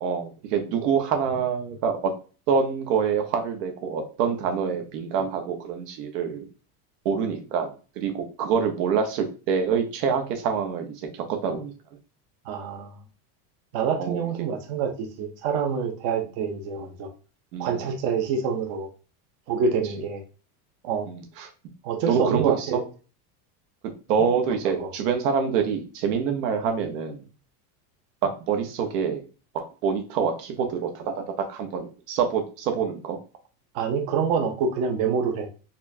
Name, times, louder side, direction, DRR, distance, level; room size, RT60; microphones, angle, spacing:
voice 1, 0.0-2.1 2.5-6.5 7.0-11.7 14.0-14.2 17.5-17.7 21.1-21.5 22.1-22.8 24.1-27.2 28.2-29.2 29.5-33.2, right 6 dB, 85° right, 6 dB, 1.0 m, -26 dB
voice 2, 12.5-12.9 13.7-17.1 17.6-18.9 19.5-20.2 20.8-21.1 21.8-22.8 24.7-24.9 33.7-35.5, right 6 dB, 35° right, 4 dB, 0.4 m, -26 dB
4.2 x 2.3 x 2.6 m, 0.35 s
cardioid pair, 170°, 46 cm